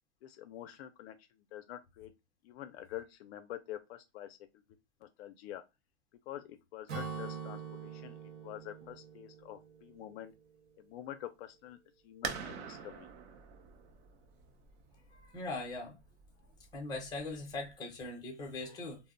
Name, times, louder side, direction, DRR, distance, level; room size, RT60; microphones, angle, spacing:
voice 1, 0.2-1.2 1.5-2.1 2.4-4.4 5.0-5.6 6.3-8.2 8.4-10.3 10.8-11.8 12.0-13.1, left 12 dB, 60° left, 0.5 m, -46 dB
Acoustic guitar / Strum, 6.9-10.5, right 6 dB, 75° right, 0.9 m, -44 dB
sound 1, 12.2-17.7, right 6 dB, 45° right, 0.5 m, -45 dB
voice 2, 15.1-16.0 16.7-19.1, left 2 dB, 10° left, 0.6 m, -41 dB
2.2 x 2.0 x 3.6 m
supercardioid pair, 150°, 35 cm